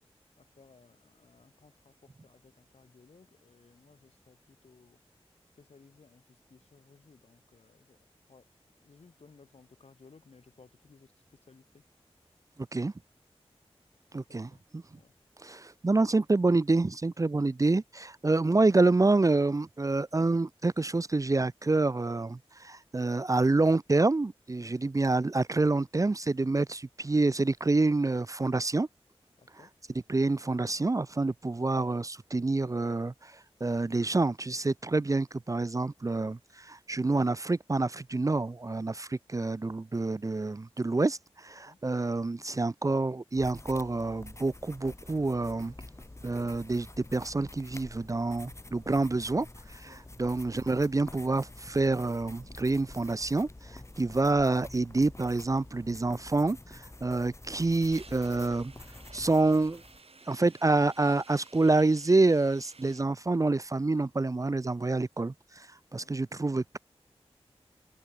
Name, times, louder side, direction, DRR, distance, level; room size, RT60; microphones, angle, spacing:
voice 1, 0.4-5.0 5.6-8.0 8.3-11.8 14.1-14.6 14.9-15.1 24.6-24.8 29.4-29.7 41.7-41.8 49.8-50.1 65.9-66.2, left 4 dB, 75° left, 7.8 m, -59 dB
voice 2, 14.1-14.8 15.4-28.9 30.1-45.7 46.2-49.5 49.7-49.8 50.2-53.5 54.0-58.7 59.1-59.8 60.3-65.7 65.9-66.8, right 3 dB, 30° right, 0.5 m, -27 dB
sound 1, 43.3-60.0, left 2 dB, 25° left, 1.4 m, -48 dB
sound 2, 57.6-63.0, right 4 dB, 65° right, 5.5 m, -55 dB
open air
cardioid pair, 45°, 11 cm